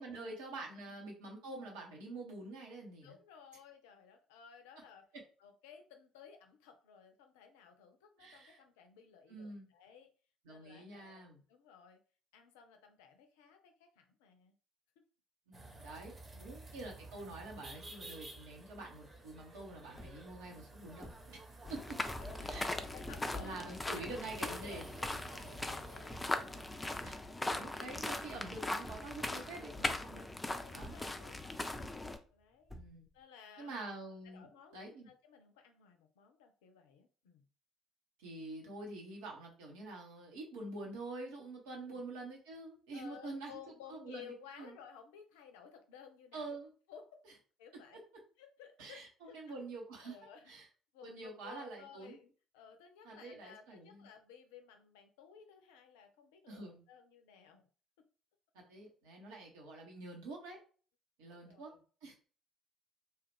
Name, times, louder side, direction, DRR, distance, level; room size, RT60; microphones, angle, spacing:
voice 1, 0.0-3.2 8.2-8.6 9.3-9.7 10.4-11.4 15.5-21.4 21.7-22.0 22.4-22.7 23.4-24.8 27.0-27.2 27.5-30.2 30.7-30.9 32.7-33.1 33.6-35.1 38.2-43.5 43.9-44.7 46.3-46.7 48.8-50.2 50.5-50.6 51.0-52.2 53.0-54.1 56.5-56.8 58.5-60.6 61.2-61.7 62.0-62.1, right 2 dB, 70° right, -1 dB, 1.0 m, -47 dB
voice 2, 3.0-5.1 5.4-10.1 10.5-11.2 11.5-12.0 12.3-14.5 15.0-15.1 16.3-16.6 21.6-21.7 22.2-22.3 22.9-26.3 30.7-32.8 33.1-34.0 34.3-37.4 41.8-42.0 42.9-46.6 46.9-47.1 47.6-48.0 48.4-49.6 50.0-52.3 52.5-57.6 59.2-59.3 61.3-62.1, left 7 dB, 70° left, 6 dB, 0.5 m, -56 dB
sound 1, 15.5-27.1, right 2 dB, 30° right, 1.0 m, -53 dB
sound 2, 20.0-20.4 21.0-21.4 21.9-22.5 23.1-23.5 24.0-24.6 25.0-25.5 26.1-26.5 26.9-27.6 27.9-28.4 28.8-29.4 29.7-30.4 30.8-31.3 31.7-32.3 32.7-33.2, equal, ahead, 0.9 m, -51 dB
sound 3, 21.6-32.2, left 2 dB, 15° left, 0.5 m, -40 dB
2.8 x 2.4 x 3.4 m, 0.39 s
figure-of-eight pair, 50°, 0 cm